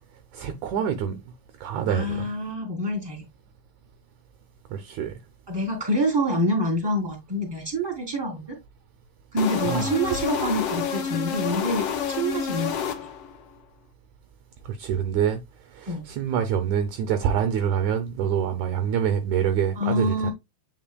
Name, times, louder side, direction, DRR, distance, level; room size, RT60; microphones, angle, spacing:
voice 1, 0.3-1.2 1.6-2.3 4.7-5.1 9.6-10.0 14.6-15.4 15.7-20.3, right 8 dB, 75° right, 1.9 m, -26 dB
voice 2, 1.9-3.2 5.5-8.5 9.3-11.9 12.2-12.8 15.9-16.0 19.8-20.3, equal, 5° right, 2.7 m, -26 dB
sound 1, 9.4-13.4, left 7 dB, 70° left, 1.5 m, -29 dB
9.2 x 5.1 x 2.2 m
omnidirectional pair, 4.0 m